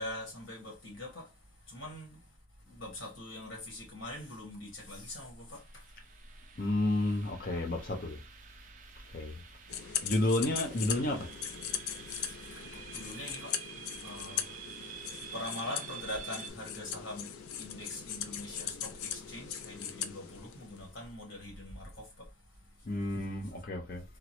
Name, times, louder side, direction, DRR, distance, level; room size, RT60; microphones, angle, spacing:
voice 1, 0.0-2.4 2.7-6.6 9.3-9.4 9.7-9.9 12.1-22.9, left 1 dB, 60° left, 1.5 m, -44 dB
sound 1, 5.6-16.5, right 8 dB, 35° right, 0.3 m, -49 dB
voice 2, 6.6-8.2 9.1-9.4 10.0-11.3 22.9-24.0, left 1 dB, 40° left, 0.6 m, -31 dB
sound 2, 9.7-20.9, left 9 dB, 85° left, 0.4 m, -40 dB
3.6 x 2.0 x 2.9 m
head